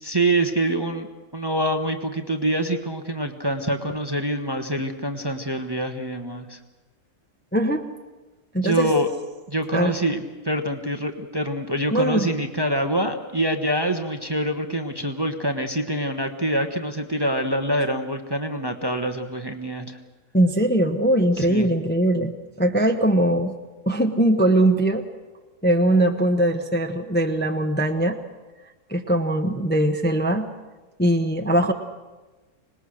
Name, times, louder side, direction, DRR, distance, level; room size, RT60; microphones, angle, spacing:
voice 1, 0.0-6.6 8.6-9.1 9.5-20.0 21.4-21.7, right 1 dB, 20° right, 6 dB, 1.0 m, -25 dB
voice 2, 7.5-7.8 8.5-8.9 9.7-9.9 11.9-12.3 20.3-23.5 23.9-25.0 25.6-28.2 28.9-30.5 31.0-31.7, right 1 dB, 10° left, 4 dB, 0.9 m, -21 dB
26.0 x 20.0 x 6.5 m, 1.2 s
omnidirectional pair, 1.5 m